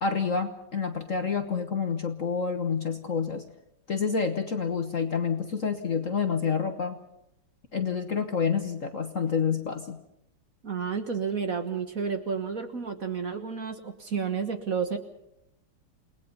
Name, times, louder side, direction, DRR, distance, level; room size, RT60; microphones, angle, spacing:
voice 1, 0.0-3.4 3.9-7.0 7.7-10.0, left 6 dB, 45° left, 7 dB, 1.3 m, -28 dB
voice 2, 10.6-15.0, right 6 dB, 45° right, 7 dB, 1.6 m, -31 dB
29.0 x 19.5 x 5.5 m, 0.80 s
omnidirectional pair, 2.4 m